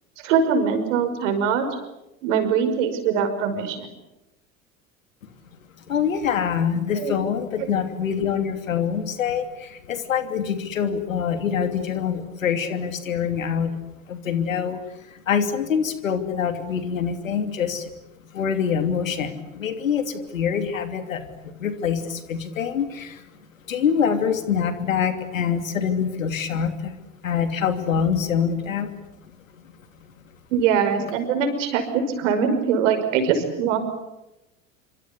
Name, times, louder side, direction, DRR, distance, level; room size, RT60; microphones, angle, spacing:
voice 1, 0.2-1.7 2.2-3.9 7.0-7.1 30.5-33.8, right 6 dB, 65° right, 8 dB, 5.7 m, -22 dB
voice 2, 5.9-13.8 14.1-17.9 18.3-23.3 23.7-26.9 27.2-29.0 29.5-29.6, left 7 dB, 80° left, 9 dB, 2.9 m, -25 dB
26.5 x 26.0 x 8.3 m, 0.94 s
figure-of-eight pair, 75°, 40 cm